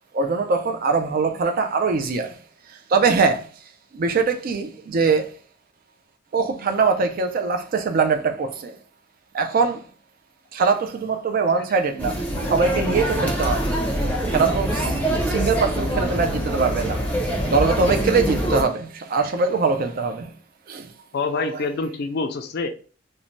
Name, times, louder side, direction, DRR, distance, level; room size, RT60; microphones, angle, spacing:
voice 1, 0.1-2.4 2.7-3.5 3.9-5.3 6.3-8.8 9.3-9.8 10.5-12.2 12.5-13.7 14.3-17.0 17.4-20.3 20.7-20.9, right 4 dB, 45° right, 0.3 m, -22 dB
sound 1, 12.0-18.6, right 1 dB, 10° left, 0.6 m, -24 dB
voice 2, 21.1-22.7, left 3 dB, 55° left, 0.4 m, -27 dB
2.6 x 2.1 x 3.0 m
head